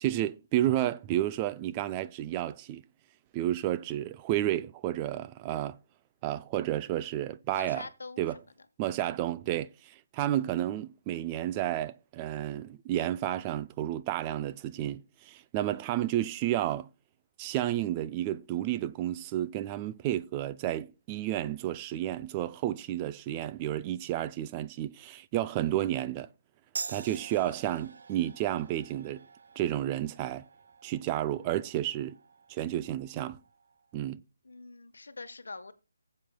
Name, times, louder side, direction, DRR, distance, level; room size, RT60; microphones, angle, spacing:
voice 1, 0.0-2.8 3.3-5.8 6.2-7.9 8.2-8.4 8.8-16.9 17.4-26.3 26.9-29.2 29.6-30.5 30.8-32.2 32.5-33.4 33.9-34.2, right 13 dB, 25° right, 0.4 m, -31 dB
voice 2, 7.5-8.4 8.9-9.1 34.4-35.7, left 3 dB, 80° left, 1.1 m, -44 dB
sound 1, 26.8-33.8, right 5 dB, 65° right, 0.6 m, -46 dB
15.0 x 7.5 x 2.2 m
hypercardioid pair, 155°, 0 cm